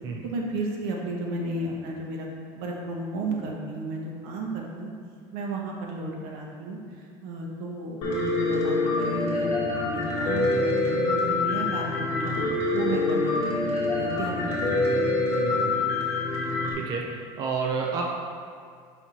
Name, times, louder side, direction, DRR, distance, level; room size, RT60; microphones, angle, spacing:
voice 1, 0.2-2.3 2.5-4.9 5.3-15.1 15.3-15.4, right 2 dB, 75° right, -1 dB, 1.1 m, -33 dB
Piano, 8.0-16.7, left 2 dB, 50° left, 1.5 m, -25 dB
voice 2, 15.4-15.8 16.7-18.0, right 5 dB, 30° right, 0 dB, 0.4 m, -30 dB
5.6 x 4.1 x 4.3 m, 2.1 s
cardioid pair, 175°, 13 cm